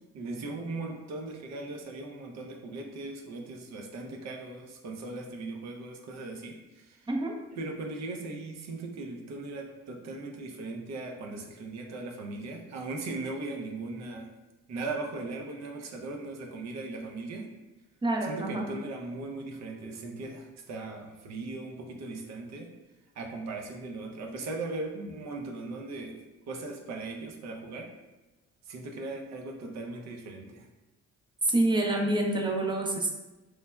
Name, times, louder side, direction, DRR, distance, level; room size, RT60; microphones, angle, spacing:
voice 1, 0.1-7.1 7.6-14.3 14.7-17.5 18.2-22.7 23.2-26.1 26.5-27.9 28.7-30.7, right 3 dB, 65° right, 2 dB, 0.6 m, -38 dB
voice 2, 18.0-18.7 31.4-33.1, right 2 dB, 15° right, 1 dB, 0.5 m, -27 dB
3.1 x 2.1 x 2.2 m, 1.0 s
supercardioid pair, 60°, 30 cm